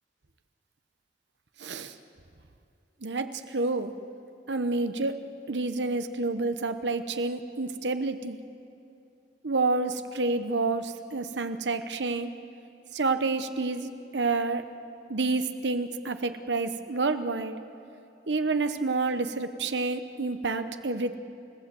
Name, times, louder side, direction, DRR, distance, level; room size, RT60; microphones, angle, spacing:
voice 1, 1.6-1.9 3.0-3.9 4.5-5.2 5.5-8.4 9.4-12.3 12.9-14.6 15.1-17.5 18.3-21.2, right 3 dB, 85° right, 9 dB, 1.0 m, -29 dB
30.0 x 16.0 x 7.7 m, 2.6 s
head